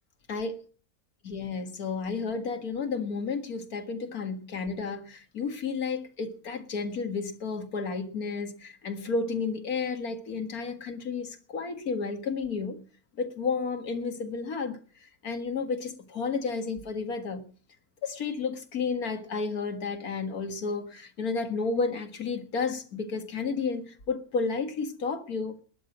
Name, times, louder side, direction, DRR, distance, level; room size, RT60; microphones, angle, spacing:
voice 1, 1.2-12.8 13.2-14.8 15.2-17.5 18.0-25.5, left 4 dB, 75° left, 2.3 m, -32 dB
21.0 x 7.9 x 6.1 m
omnidirectional pair, 1.6 m